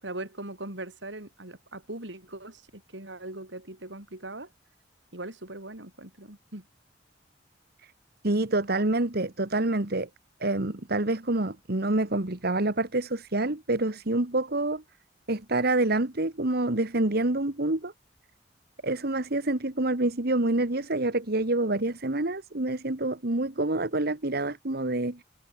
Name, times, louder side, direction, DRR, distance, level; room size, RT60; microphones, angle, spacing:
voice 1, 0.0-4.5 5.1-6.6, right 2 dB, 70° right, 5.3 m, -40 dB
voice 2, 8.2-10.1 10.4-14.8 15.3-17.9 18.8-25.2, right 2 dB, 55° right, 1.8 m, -27 dB
head